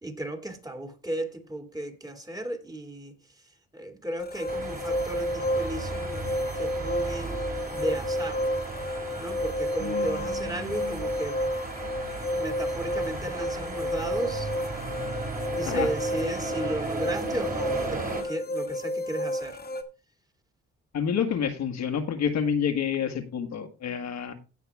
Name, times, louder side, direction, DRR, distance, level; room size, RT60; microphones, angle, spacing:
voice 1, 0.0-3.1 3.7-8.5 9.2-11.4 12.3-14.5 15.5-19.6, right 1 dB, 10° right, 2.3 m, -35 dB
sound 1, 4.2-19.8, equal, 30° left, 1.6 m, -31 dB
sound 2, 4.5-18.2, right 3 dB, 30° right, 2.9 m, -35 dB
voice 2, 9.8-11.0 15.6-15.9 20.9-24.3, left 7 dB, 65° left, 1.7 m, -29 dB
16.5 x 5.8 x 3.5 m
cardioid pair, 90°, 30 cm